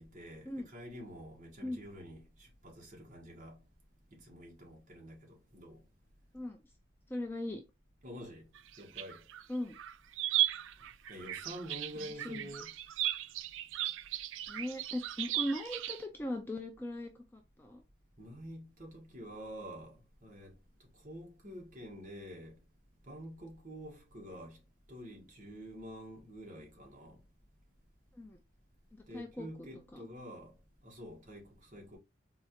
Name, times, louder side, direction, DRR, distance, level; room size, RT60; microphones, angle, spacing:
voice 1, 0.0-3.6 4.1-5.8 8.0-8.5 8.8-9.2 11.1-12.7 18.2-20.5 20.9-22.6 23.0-24.6 24.9-27.2 29.1-30.5 30.8-32.0, equal, 40° right, 1.3 m, -48 dB
voice 2, 7.1-7.6 9.5-9.8 12.2-12.5 14.5-17.8 28.1-28.4 29.1-29.5 29.9-30.1, left 1 dB, 10° left, 0.3 m, -39 dB
sound 1, 8.6-9.4 9.8-16.0, right 12 dB, 75° right, 0.3 m, -36 dB
4.2 x 2.4 x 2.8 m
head